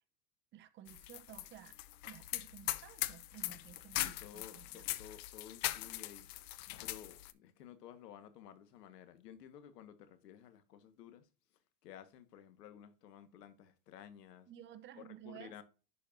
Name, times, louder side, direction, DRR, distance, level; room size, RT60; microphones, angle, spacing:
voice 1, 0.5-1.8 2.1-4.8 14.5-15.6, right 11 dB, 25° right, 0.6 m, -54 dB
sound 1, 0.9-7.3, left 17 dB, 45° left, 0.5 m, -41 dB
voice 2, 3.9-6.3 6.8-11.3 11.8-14.5 14.9-15.6, left 10 dB, 85° left, 1.5 m, -54 dB
11.0 x 4.3 x 2.6 m
supercardioid pair, 140°, 47 cm